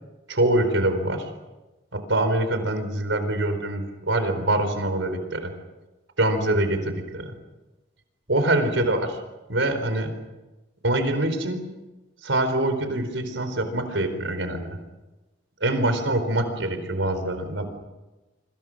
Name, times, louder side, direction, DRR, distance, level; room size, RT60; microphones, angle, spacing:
voice 1, 0.3-1.2 1.9-5.5 6.2-7.3 8.3-9.2 9.5-10.1 10.8-11.7 12.2-14.8 15.6-17.6, right 1 dB, 75° right, 8 dB, 4.3 m, -24 dB
27.0 x 26.0 x 6.6 m, 1.1 s
head